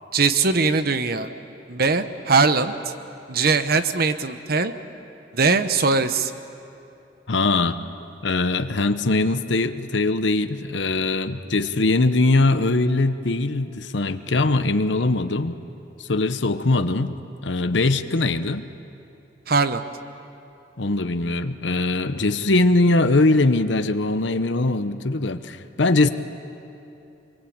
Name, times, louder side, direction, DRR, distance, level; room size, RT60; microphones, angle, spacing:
voice 1, 0.1-1.3 1.7-2.9 3.3-4.7 5.3-6.3 19.5-19.8, right 4 dB, 55° right, 10 dB, 1.0 m, -21 dB
voice 2, 7.3-7.8 8.2-15.5 16.0-17.2 17.4-18.7 20.8-26.1, left 2 dB, 75° left, 10 dB, 1.0 m, -21 dB
25.0 x 23.0 x 8.8 m, 2.8 s
head